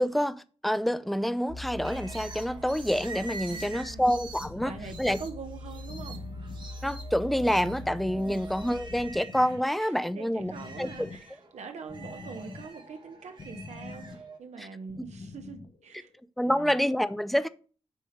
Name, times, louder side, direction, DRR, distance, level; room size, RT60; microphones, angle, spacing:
voice 1, 0.0-4.7 5.0-5.2 6.8-10.5 10.8-11.1 14.6-14.7 16.4-17.5, equal, ahead, 0.4 m, -27 dB
sound 1, 1.5-9.1, left 2 dB, 65° left, 3.2 m, -43 dB
sound 2, 1.8-9.7 10.1-14.4, right 3 dB, 40° right, 1.4 m, -46 dB
voice 2, 3.5-4.1 4.6-6.2 8.1-8.4 9.8-16.1 16.4-16.7, right 5 dB, 75° right, 1.0 m, -44 dB
sound 3, 4.4-16.2, left 3 dB, 45° left, 0.8 m, -46 dB
9.9 x 3.4 x 5.6 m
wide cardioid pair, 170°, 12 cm